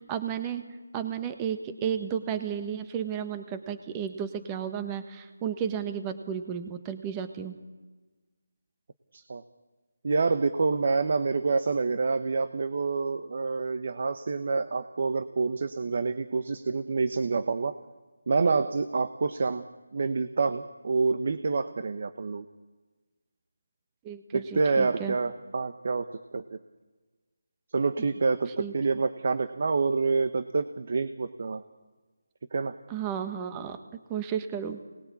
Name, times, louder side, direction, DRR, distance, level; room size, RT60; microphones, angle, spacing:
voice 1, 0.1-0.6 0.9-7.5 24.0-25.2 28.6-28.7 32.9-33.8 34.1-34.9, right 8 dB, 15° right, 8 dB, 1.2 m, -33 dB
voice 2, 10.0-17.8 18.3-19.6 19.9-22.4 24.3-26.1 26.3-26.6 27.7-31.6 32.5-32.8, right 4 dB, 45° right, 11 dB, 1.0 m, -27 dB
25.5 x 20.0 x 8.5 m, 1.3 s
figure-of-eight pair, 170°, 0 cm